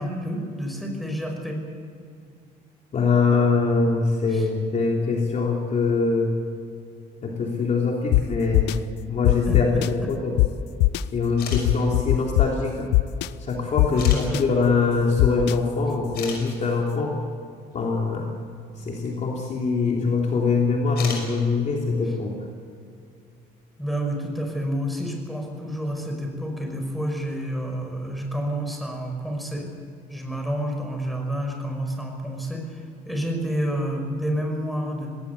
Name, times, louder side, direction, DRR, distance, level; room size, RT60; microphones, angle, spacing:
voice 1, 0.0-1.6 4.3-4.5 9.5-10.1 13.9-14.4 23.8-29.7 30.1-35.2, equal, ahead, 2 dB, 5.6 m, -29 dB
voice 2, 2.9-6.3 7.2-10.3 11.1-12.9 13.4-17.1 17.7-18.3 18.8-22.3, left 4 dB, 45° left, -1 dB, 3.3 m, -23 dB
sound 1, 8.1-8.2 8.5-8.7 9.2-9.9 10.4-10.5 10.8-11.0 11.5-12.5 12.9-13.3 13.8-14.4 15.2-15.5, left 22 dB, 90° left, 0.6 m, -18 dB
sound 2, 11.3-11.6 12.7-12.8 14.0-14.2 15.6-15.7 16.1-16.4 19.1-19.2 20.9-21.3, left 6 dB, 70° left, 5.9 m, -33 dB
20.0 x 18.0 x 8.4 m, 2.4 s
cardioid pair, 110°, 17 cm